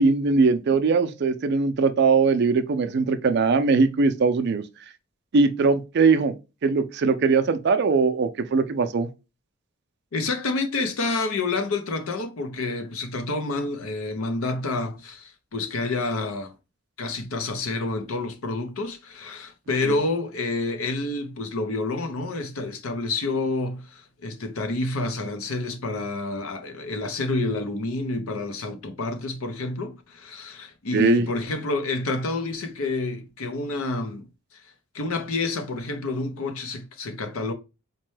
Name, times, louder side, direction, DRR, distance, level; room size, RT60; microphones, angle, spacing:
voice 1, 0.0-4.6 5.3-6.3 6.6-9.1 30.9-31.3, right 4 dB, 50° right, 0.4 m, -20 dB
voice 2, 10.1-16.5 17.0-34.6 34.9-37.5, left 2 dB, 85° left, 0.7 m, -29 dB
4.1 x 2.2 x 3.1 m
head